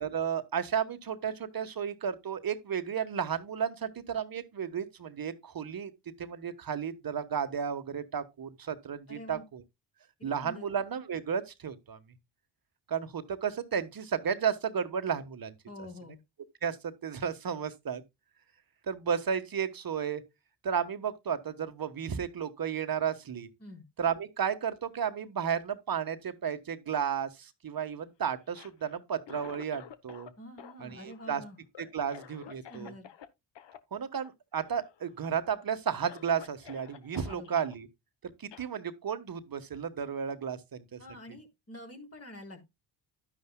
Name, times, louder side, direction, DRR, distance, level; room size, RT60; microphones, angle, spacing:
voice 1, 0.0-5.9 6.2-9.6 10.2-12.0 12.9-15.5 16.6-18.0 18.9-20.2 20.6-23.5 24.0-30.3 30.8-31.4 31.8-32.9 33.9-37.9 38.4-41.0, right 7 dB, 45° right, 1.4 m, -33 dB
voice 2, 9.1-9.4 10.2-10.7 15.7-16.2 23.6-23.8 30.4-31.6 32.7-33.1 37.3-37.6 41.0-42.7, left 1 dB, 30° left, 3.8 m, -47 dB
Cough, 28.4-30.3 30.6-33.3 33.6-33.8 34.1-34.3 34.6-35.1 35.6-35.7 36.0-37.7 38.5-38.7, left 9 dB, 65° left, 1.1 m, -50 dB
11.0 x 9.7 x 2.3 m
supercardioid pair, 60°, 48 cm